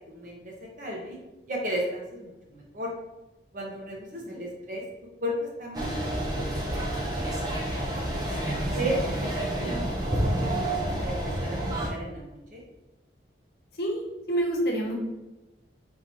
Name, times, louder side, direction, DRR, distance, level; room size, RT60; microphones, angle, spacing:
voice 1, 0.1-1.2 1.5-2.9 3.5-4.8 5.2-7.3 8.4-9.8 10.1-12.6, equal, 45° right, -2 dB, 1.0 m, -35 dB
sound 1, 5.7-11.9, right 1 dB, 25° right, 0.7 m, -29 dB
voice 2, 13.8-14.9, right 1 dB, 65° left, -1 dB, 1.0 m, -29 dB
3.7 x 2.8 x 4.5 m, 1.0 s
head